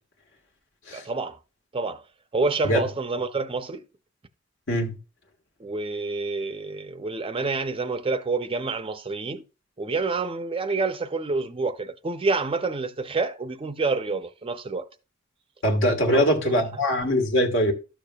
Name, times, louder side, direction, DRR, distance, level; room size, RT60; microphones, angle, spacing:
voice 1, 0.9-1.4 1.7-2.0 2.3-3.8 5.6-9.4 9.8-14.9 16.1-16.6, right 3 dB, 25° right, 0.5 m, -28 dB
voice 2, 4.7-5.0 15.6-17.7, equal, 65° left, 1.4 m, -22 dB
12.5 x 6.7 x 2.3 m
head